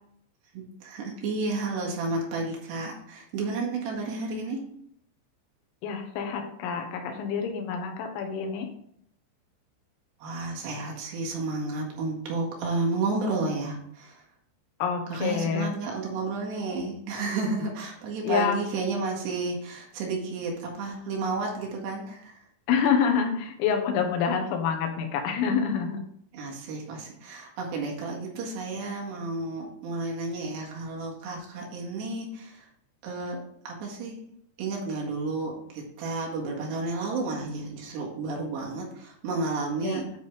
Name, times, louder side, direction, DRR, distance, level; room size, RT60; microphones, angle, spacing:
voice 1, 0.5-4.6 10.2-14.2 15.1-22.4 26.3-32.7 33.0-33.4 33.7-34.2 34.6-40.2, right 3 dB, 65° right, -2 dB, 3.9 m, -31 dB
voice 2, 5.8-8.7 14.8-15.7 18.2-18.6 22.7-26.0 39.8-40.0, left 6 dB, 85° left, 4 dB, 3.6 m, -27 dB
10.0 x 4.1 x 4.9 m, 0.70 s
omnidirectional pair, 5.5 m